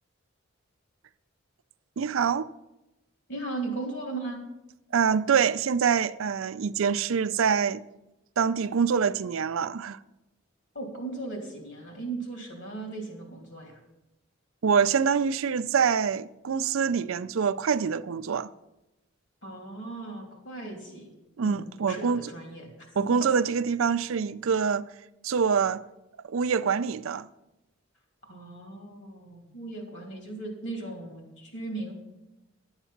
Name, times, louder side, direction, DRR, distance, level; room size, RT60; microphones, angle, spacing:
voice 1, 2.0-2.5 4.9-7.8 8.4-10.0 14.6-18.5 21.4-22.3 23.0-24.9 25.2-25.8 26.2-27.3, right 6 dB, 80° right, 0.4 m, -25 dB
voice 2, 3.3-4.4 10.7-13.8 19.4-21.1 21.4-22.7 28.3-31.9, right 2 dB, 60° left, 3.0 m, -37 dB
11.0 x 8.0 x 5.8 m
head